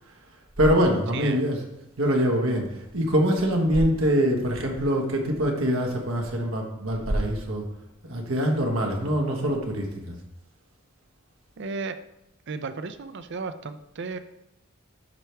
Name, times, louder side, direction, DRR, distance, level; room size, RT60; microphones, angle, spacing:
voice 1, 0.6-1.6 2.0-7.6 8.0-10.2, equal, 75° right, 2 dB, 1.4 m, -24 dB
voice 2, 1.1-1.4 11.6-12.0 12.5-14.2, right 4 dB, 55° right, 11 dB, 0.5 m, -34 dB
12.0 x 4.6 x 3.4 m, 0.87 s
head